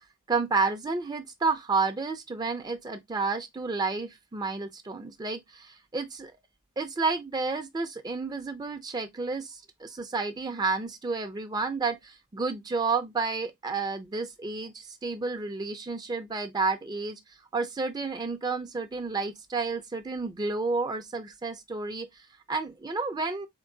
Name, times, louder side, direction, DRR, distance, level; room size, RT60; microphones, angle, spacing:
voice 1, 0.3-6.3 6.8-23.5, right 4 dB, 20° right, 0.4 m, -31 dB
3.9 x 3.6 x 2.6 m
head